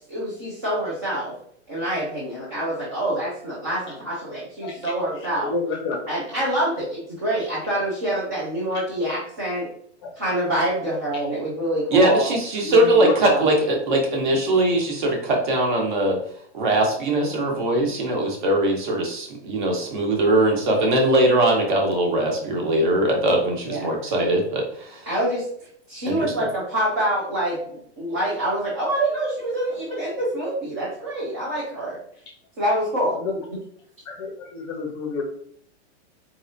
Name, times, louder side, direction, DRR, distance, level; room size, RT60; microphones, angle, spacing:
voice 1, 0.1-1.3 1.7-5.5 6.1-9.7 10.2-12.3 13.2-13.4 23.7-23.9 25.1-25.5 25.9-32.0 32.6-33.2, right 1 dB, 15° right, -8 dB, 0.4 m, -26 dB
voice 2, 4.6-6.0 10.0-10.1 12.6-13.1 33.1-33.3 34.0-35.2, left 4 dB, 25° left, 1 dB, 0.6 m, -29 dB
voice 3, 11.9-16.2 16.5-25.0 26.0-26.3, right 1 dB, 45° right, 2 dB, 1.1 m, -21 dB
4.4 x 3.4 x 2.6 m, 0.63 s
supercardioid pair, 175°, 34 cm